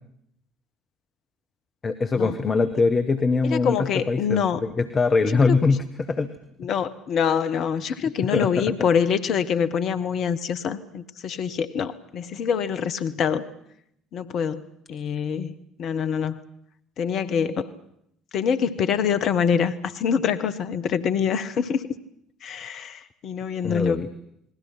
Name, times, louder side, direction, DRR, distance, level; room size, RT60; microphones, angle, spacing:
voice 1, 1.8-6.3 8.0-8.7 23.6-24.1, left 4 dB, 30° left, 9 dB, 1.5 m, -23 dB
voice 2, 3.4-4.6 5.5-5.6 6.6-13.4 14.1-14.6 14.9-16.4 17.0-17.7 18.3-21.9 22.4-24.0, left 7 dB, 50° left, 12 dB, 1.3 m, -25 dB
29.0 x 21.0 x 6.0 m, 0.73 s
figure-of-eight pair, 60°, 0 cm